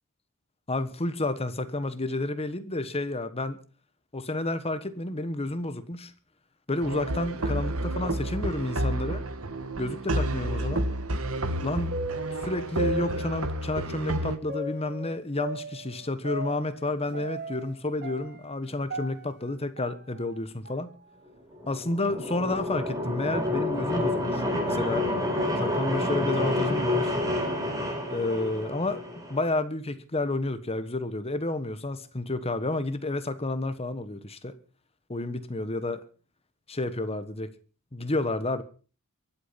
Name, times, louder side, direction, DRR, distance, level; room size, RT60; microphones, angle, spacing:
voice 1, 0.7-3.6 4.1-6.1 6.7-9.2 9.8-10.8 11.6-11.9 12.4-20.9 21.7-25.1 25.6-27.2 28.1-29.0 29.3-34.5 35.1-36.0 36.7-37.5 37.9-38.6, left 2 dB, 30° left, 1.4 m, -30 dB
sound 1, 6.8-14.4, right 1 dB, 70° right, 1.7 m, -30 dB
sound 2, 11.5-13.7 14.5-17.7 18.0-20.4 20.6-20.7 21.5-21.6 22.4-22.6 23.2-23.3 24.2-24.5, right 1 dB, 55° right, 3.9 m, -37 dB
sound 3, 21.5-29.4, left 1 dB, 15° right, 4.6 m, -29 dB
23.5 x 8.7 x 5.8 m
head